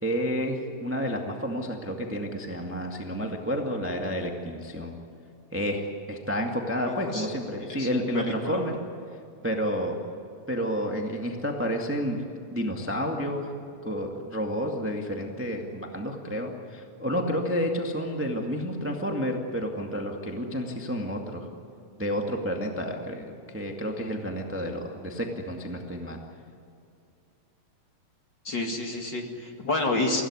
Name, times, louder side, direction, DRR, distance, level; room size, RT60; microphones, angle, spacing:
voice 1, 0.0-5.0 5.5-8.7 9.4-10.0 10.5-13.5 13.8-21.5 22.0-26.2, equal, 5° right, 1 dB, 1.2 m, -30 dB
voice 2, 6.8-7.3 7.6-7.9 8.1-8.6 28.4-30.2, left 2 dB, 35° left, 2 dB, 2.4 m, -29 dB
25.0 x 17.0 x 9.8 m, 2.5 s
omnidirectional pair, 3.6 m